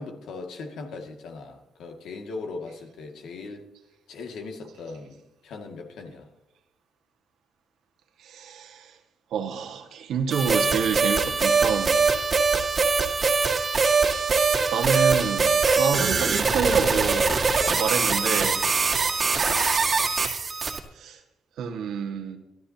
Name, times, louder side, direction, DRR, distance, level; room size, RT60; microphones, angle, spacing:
voice 1, 0.0-3.7 4.1-6.3, left 3 dB, 75° left, 2.2 m, -39 dB
voice 2, 8.2-9.0 9.3-12.0 14.7-17.3 17.8-18.6 21.0-21.2 21.6-22.4, right 6 dB, 75° right, 1.8 m, -28 dB
sound 1, 10.3-20.8, right 4 dB, 40° right, 2.0 m, -22 dB
24.5 x 12.5 x 2.9 m
cardioid pair, 90°, 0 cm